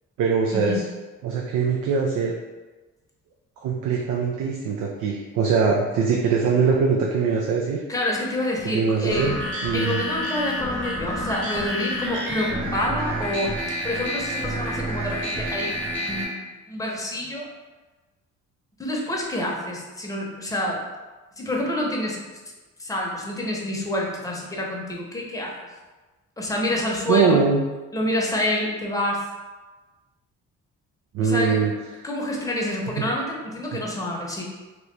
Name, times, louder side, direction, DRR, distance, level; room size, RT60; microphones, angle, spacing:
voice 1, 0.2-0.8 1.2-2.4 3.6-7.8 8.7-10.0 27.1-27.6 31.1-32.0, right 5 dB, 75° right, -1 dB, 0.5 m, -22 dB
voice 2, 7.9-9.3 9.7-13.6 13.8-17.5 18.8-20.8 21.4-22.2 22.8-25.5 26.4-27.4 27.9-29.2 31.2-31.7 32.0-34.4, left 1 dB, 10° left, -2 dB, 0.8 m, -27 dB
sound 1, 9.1-16.2, equal, 40° right, 1.2 m, -29 dB
3.0 x 2.6 x 3.2 m, 1.2 s
cardioid pair, 90°, 30 cm